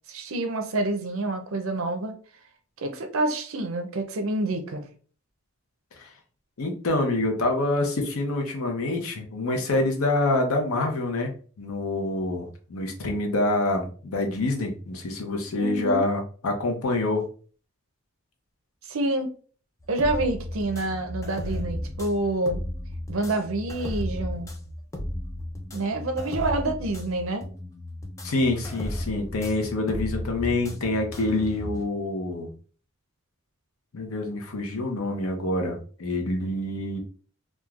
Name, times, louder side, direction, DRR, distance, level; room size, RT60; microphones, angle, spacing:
voice 1, 0.1-2.1 2.8-4.9 15.6-16.0 18.9-19.3 19.9-22.6 23.1-24.5 25.7-27.4, right 2 dB, 75° right, 6 dB, 0.5 m, -27 dB
voice 2, 6.6-11.3 11.6-17.2 28.2-32.5 33.9-37.0, left 2 dB, 90° left, 3 dB, 0.7 m, -26 dB
sound 1, 19.8-31.8, left 1 dB, 15° left, 0.3 m, -34 dB
3.0 x 2.3 x 2.3 m, 0.41 s
head